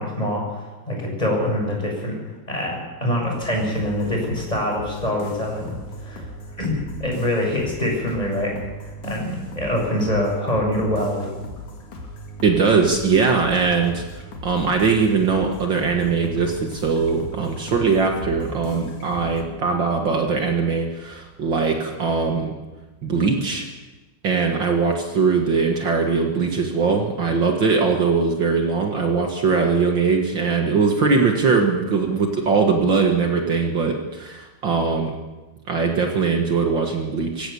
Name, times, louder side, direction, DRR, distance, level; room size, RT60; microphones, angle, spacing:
voice 1, 0.0-2.1 2.5-6.3 6.6-8.5 9.0-11.3, left 1 dB, 10° left, -1 dB, 6.6 m, -24 dB
sound 1, 3.5-19.4, equal, 50° left, 3.6 m, -37 dB
voice 2, 12.4-14.0 14.4-22.5 23.0-23.7 24.2-35.2 35.7-37.5, right 4 dB, 80° right, 2 dB, 1.0 m, -21 dB
25.0 x 16.0 x 7.1 m, 1.2 s
omnidirectional pair, 4.9 m